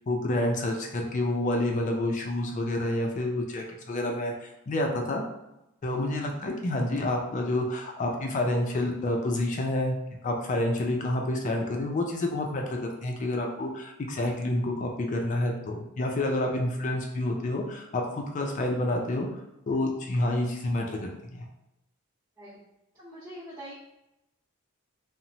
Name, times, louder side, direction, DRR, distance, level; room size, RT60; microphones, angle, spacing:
voice 1, 0.1-5.2 5.8-9.9 10.2-19.3 19.7-21.5, left 1 dB, 35° left, 1 dB, 0.3 m, -28 dB
voice 2, 22.9-23.7, equal, 10° right, -11 dB, 0.7 m, -44 dB
2.9 x 2.0 x 2.7 m, 0.89 s
head